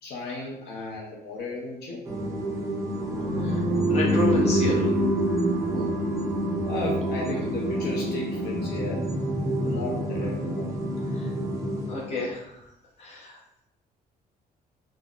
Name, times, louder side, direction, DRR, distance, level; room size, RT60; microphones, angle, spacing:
voice 1, 0.0-2.0 5.7-6.0 6.7-9.1 9.6-10.7, left 3 dB, 75° left, -3 dB, 0.5 m, -35 dB
sound 1, 2.1-12.2, right 1 dB, 20° right, 0.4 m, -26 dB
voice 2, 3.9-4.9 11.1-11.3 11.9-12.5 13.0-13.4, left 2 dB, 40° left, -4 dB, 0.8 m, -31 dB
3.6 x 2.0 x 2.3 m, 0.83 s
cardioid pair, 145°, 17 cm